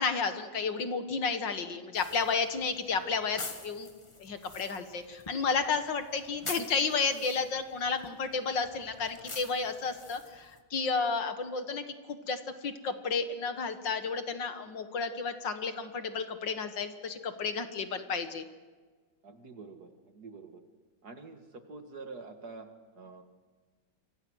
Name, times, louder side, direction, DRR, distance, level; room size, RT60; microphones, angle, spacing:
voice 1, 0.0-3.9 4.2-18.4, left 5 dB, 60° left, 8 dB, 2.1 m, -32 dB
sound 1, 1.9-10.6, left 2 dB, 20° left, 1.1 m, -46 dB
voice 2, 19.2-20.6 21.0-23.2, right 4 dB, 50° right, 6 dB, 2.3 m, -47 dB
29.0 x 24.5 x 6.4 m, 1.4 s
omnidirectional pair, 2.2 m